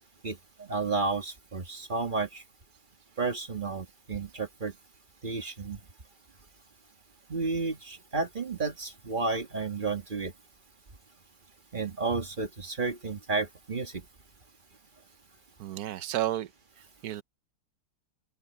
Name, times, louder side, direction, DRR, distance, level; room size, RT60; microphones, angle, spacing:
voice 1, 0.2-2.4 3.2-4.7 5.2-5.8 7.3-10.3 11.7-14.0, right 3 dB, 25° right, 1.5 m, -32 dB
voice 2, 15.6-16.5 17.0-17.2, right 13 dB, 65° right, 0.9 m, -31 dB
open air
omnidirectional pair, 2.2 m